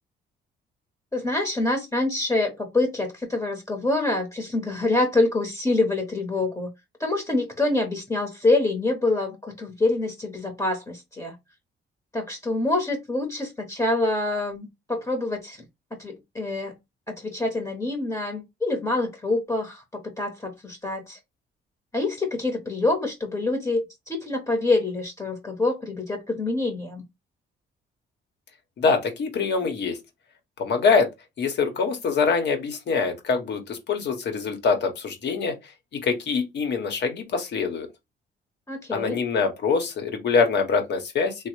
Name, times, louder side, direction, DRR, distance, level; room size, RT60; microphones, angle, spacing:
voice 1, 1.1-6.7 7.0-11.3 12.1-15.6 16.0-16.8 17.1-21.2 21.9-27.0 38.7-39.2, left 2 dB, 15° left, 0.9 m, -26 dB
voice 2, 28.8-30.0 30.6-31.1 31.4-35.5 35.9-37.9 38.9-41.5, left 5 dB, 60° left, 1.0 m, -24 dB
3.1 x 2.1 x 3.0 m
cardioid pair, 90°, 20 cm